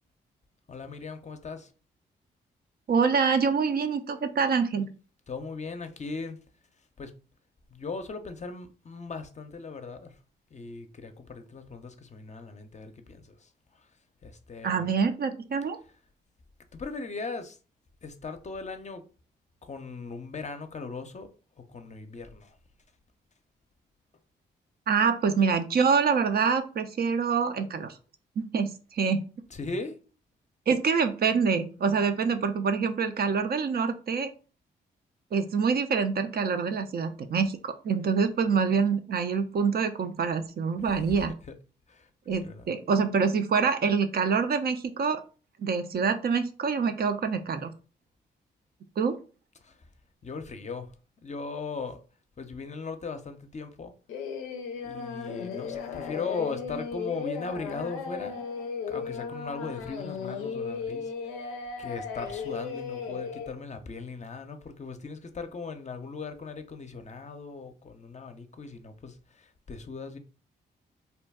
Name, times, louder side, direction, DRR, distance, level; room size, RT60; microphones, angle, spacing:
voice 1, 0.7-1.7 5.3-6.4 7.0-7.1 7.7-10.2 10.5-13.5 14.2-14.9 16.7-17.6 18.0-19.0 19.6-21.3 21.7-22.6 29.5-30.0 41.5-41.6 41.9-42.1 42.4-42.7 49.6-49.8 50.2-50.9 51.2-52.0 52.4-53.9 54.8-58.4 58.9-61.1 61.4-61.5 61.8-70.2, left 4 dB, 35° left, 0.6 m, -38 dB
voice 2, 2.9-4.9 14.6-15.8 24.9-28.0 28.4-29.2 30.7-34.3 35.3-41.3 42.3-45.2 45.6-47.7 49.0-49.2, right 5 dB, 50° right, 0.5 m, -26 dB
Singing, 54.1-63.5, left 5 dB, 90° left, 0.4 m, -36 dB
2.7 x 2.2 x 3.4 m
hypercardioid pair, 45°, 21 cm